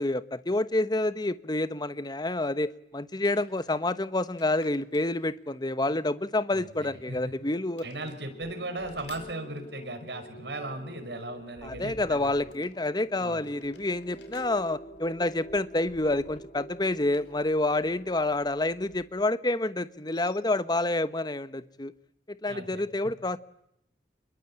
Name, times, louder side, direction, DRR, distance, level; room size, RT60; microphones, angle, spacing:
voice 1, 0.0-7.8 11.6-21.9 22.4-23.4, left 2 dB, 25° left, 14 dB, 1.1 m, -28 dB
sound 1, 3.1-3.7 4.4-5.7 6.7-7.4 7.7-8.2 8.9-10.0 12.1-12.8 13.3-15.7 16.7-18.0 18.2-18.3 20.0-20.4, left 6 dB, 85° left, 4.8 m, -57 dB
voice 2, 6.5-7.3 7.8-12.3 13.2-13.5 22.5-22.8, right 2 dB, 75° right, 6 dB, 5.5 m, -37 dB
sound 2, 7.3-18.1, equal, 40° left, 2.0 m, -47 dB
sound 3, 13.6-19.2, left 1 dB, 55° left, 7.6 m, -61 dB
28.5 x 22.0 x 8.8 m, 0.76 s
head